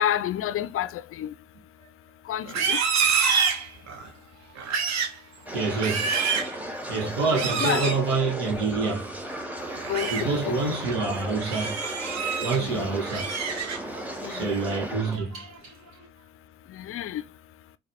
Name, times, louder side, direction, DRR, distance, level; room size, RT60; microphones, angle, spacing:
voice 1, 0.0-1.3 2.3-2.8 7.0-8.0 9.9-10.6 12.5-12.9 14.2-14.5 16.7-17.2, left 10 dB, 40° left, 0.4 m, -30 dB
Livestock farm animals working animals, 2.4-4.1 4.6-5.2 5.6-6.6 7.3-8.0 9.7-10.2 10.7-11.0 11.4-12.6 13.0-14.0 14.4-14.7 15.2-15.6, right 6 dB, 50° right, 0.9 m, -27 dB
sound 1, 5.5-15.2, right 1 dB, 5° right, 1.1 m, -35 dB
voice 2, 5.5-6.2 6.9-9.1 10.1-11.8 12.4-13.3 14.3-15.7, right 4 dB, 80° right, 1.1 m, -27 dB
4.0 x 2.3 x 3.0 m
hypercardioid pair, 45°, 34 cm